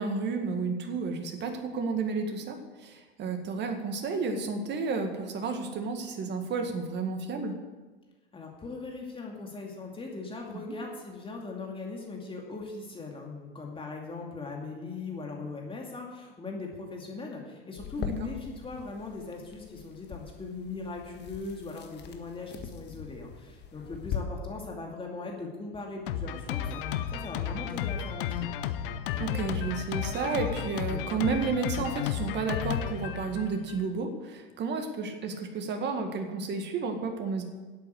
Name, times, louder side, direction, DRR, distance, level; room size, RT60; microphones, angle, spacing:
voice 1, 0.0-7.6 18.0-18.1 29.2-37.4, right 4 dB, 35° right, 5 dB, 1.9 m, -32 dB
voice 2, 8.3-28.5, left 3 dB, 15° left, 0 dB, 2.4 m, -40 dB
sound 1, 17.8-24.2, left 8 dB, 35° left, 1.6 m, -41 dB
Drum kit, 26.1-33.9, left 9 dB, 60° left, 1.0 m, -33 dB
11.5 x 8.3 x 8.0 m, 1.3 s
hypercardioid pair, 90°, 30 cm